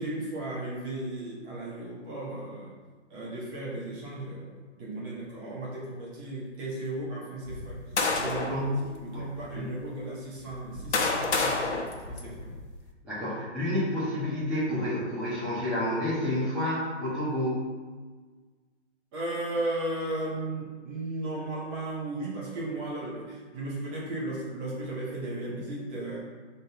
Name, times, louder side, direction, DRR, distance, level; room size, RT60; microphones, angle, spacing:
voice 1, 0.0-2.7 3.1-4.5 4.8-7.8 8.2-12.5 19.1-26.2, right 2 dB, 20° right, -7 dB, 1.8 m, -35 dB
sound 1, 7.5-8.6 9.4-9.5 10.4-12.8, left 3 dB, 65° left, 1.3 m, -29 dB
voice 2, 8.5-9.3 9.5-9.7 13.0-17.6, left 1 dB, ahead, -15 dB, 1.5 m, -29 dB
5.2 x 4.1 x 5.8 m, 1.4 s
hypercardioid pair, 160°, 36 cm